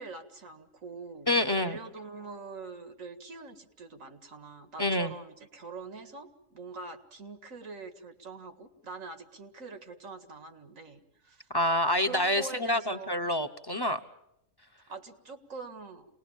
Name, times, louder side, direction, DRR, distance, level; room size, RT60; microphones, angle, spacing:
voice 1, 0.0-11.5 12.0-13.3 14.9-16.1, right 4 dB, 90° right, 7 dB, 2.3 m, -44 dB
voice 2, 1.3-1.8 4.8-5.1 11.5-14.0, left 1 dB, 20° left, 7 dB, 0.9 m, -27 dB
27.5 x 20.0 x 7.3 m, 0.82 s
omnidirectional pair, 1.3 m